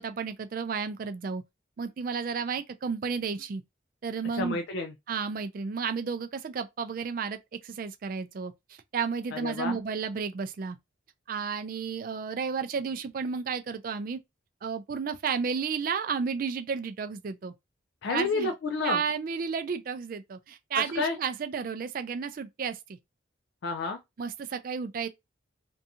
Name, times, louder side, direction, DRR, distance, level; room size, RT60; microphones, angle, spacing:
voice 1, 0.0-1.4 1.8-3.6 4.0-4.6 5.1-10.8 11.3-14.2 14.6-17.5 18.1-18.5 18.8-23.0 24.2-25.1, right 5 dB, 45° right, 0.3 m, -32 dB
voice 2, 4.3-4.9 9.3-9.8 18.0-19.0 20.8-21.2 23.6-24.0, left 3 dB, 65° left, 0.4 m, -30 dB
2.6 x 2.3 x 2.7 m
head